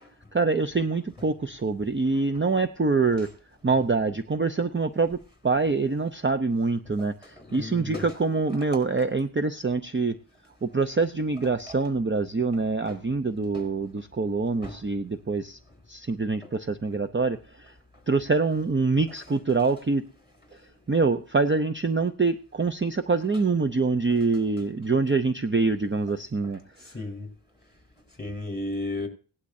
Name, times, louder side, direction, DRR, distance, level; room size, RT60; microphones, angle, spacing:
voice 1, 0.3-3.3 3.6-5.2 5.4-10.1 10.6-15.6 15.9-17.7 18.1-20.0 20.9-26.6, right 4 dB, 25° right, 0.6 m, -25 dB
voice 2, 7.4-8.1 8.7-8.8 11.7-11.8 12.9-13.0 13.5-13.7 14.6-14.7 16.4-16.5 26.8-27.3 28.2-29.1, left 2 dB, 20° left, 4.1 m, -34 dB
17.5 x 11.5 x 2.7 m
wide cardioid pair, 65°, 49 cm